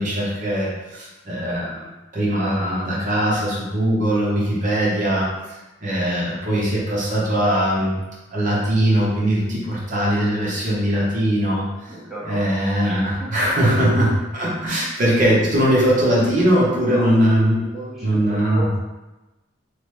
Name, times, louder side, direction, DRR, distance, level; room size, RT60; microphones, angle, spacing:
voice 1, 0.0-1.9 2.1-8.0 8.3-11.9 12.2-17.6 18.0-18.7, equal, 45° right, -6 dB, 0.8 m, -20 dB
voice 2, 11.9-12.5 12.8-13.3 14.7-14.9 16.8-17.1 17.7-18.8, right 1 dB, ahead, -10 dB, 0.8 m, -34 dB
3.1 x 2.1 x 3.1 m, 1.1 s
head